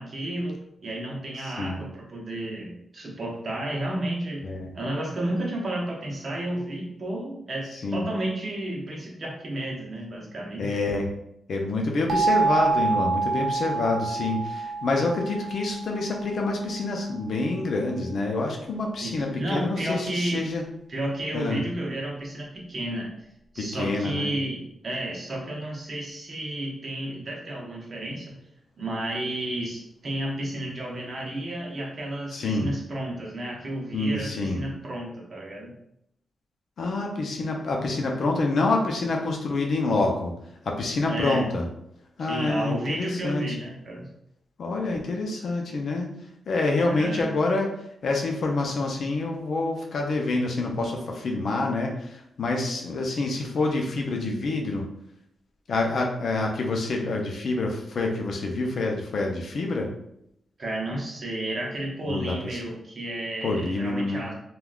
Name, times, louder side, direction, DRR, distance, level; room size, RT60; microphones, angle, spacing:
voice 1, 0.0-4.5 4.7-10.8 19.0-20.4 20.9-23.1 23.5-28.3 28.8-35.7 41.1-41.5 42.2-44.1 46.9-47.3 60.6-64.3, right 1 dB, 35° right, -2 dB, 0.7 m, -32 dB
voice 2, 10.6-11.1 11.5-20.6 21.3-21.6 23.6-24.3 32.3-32.7 33.9-34.6 36.8-40.3 40.7-41.6 42.2-43.4 44.6-46.1 46.5-47.7 48.0-54.8 55.7-59.9 62.1-62.4 63.4-64.2, left 2 dB, 55° left, 1 dB, 0.5 m, -27 dB
sound 1, 12.1-16.8, right 4 dB, 55° right, 0.4 m, -27 dB
3.5 x 2.3 x 2.3 m, 0.77 s
wide cardioid pair, 165°, 0 cm